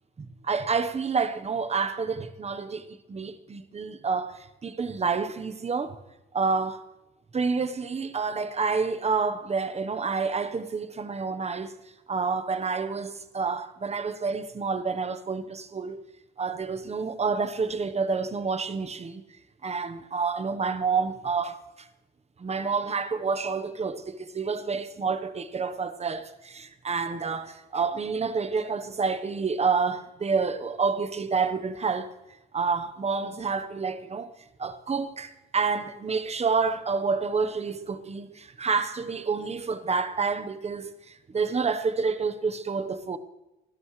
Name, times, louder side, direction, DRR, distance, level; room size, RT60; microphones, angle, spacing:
voice 1, 0.2-6.0 6.3-6.8 7.3-11.7 12.1-16.0 16.4-19.2 19.6-21.9 22.4-32.1 32.5-34.3 34.6-43.2, right 5 dB, 30° right, 1.2 m, -28 dB
27.5 x 12.5 x 3.3 m
cardioid pair, 90°, 20 cm